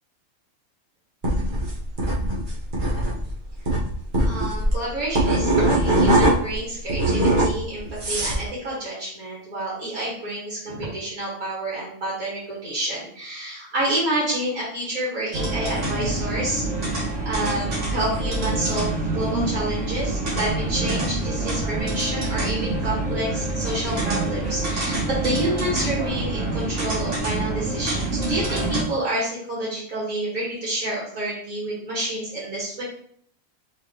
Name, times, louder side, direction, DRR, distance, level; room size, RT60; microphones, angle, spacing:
sound 1, 1.2-6.6 6.9-8.4, right 1 dB, 40° right, 1.2 m, -21 dB
voice 1, 4.2-16.6 17.2-32.8, right 1 dB, 85° right, -6 dB, 2.2 m, -29 dB
sound 2, 15.3-28.8, right 2 dB, 60° right, 1.7 m, -26 dB
4.7 x 3.8 x 3.0 m, 0.63 s
omnidirectional pair, 1.5 m